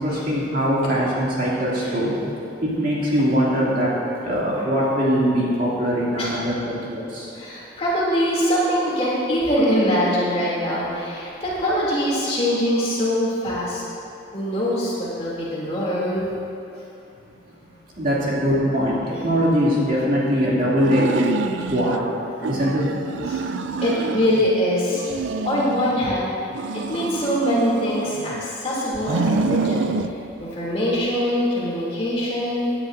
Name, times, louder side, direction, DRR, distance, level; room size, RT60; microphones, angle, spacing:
voice 1, 0.0-2.1 2.6-3.9 4.2-7.3 18.0-21.3 21.7-22.0 22.5-22.9, equal, 45° right, -7 dB, 2.4 m, -21 dB
voice 2, 7.3-13.8 14.3-16.3 23.3-23.4 23.8-25.0 25.4-26.3 26.7-29.8 30.4-32.7, equal, 30° left, -7 dB, 2.6 m, -23 dB
sound 1, 20.8-22.0 22.4-24.5 24.9-26.1 26.5-28.5 28.9-30.1, right 4 dB, 70° right, 0.4 m, -27 dB
16.5 x 10.0 x 2.6 m, 2.7 s
head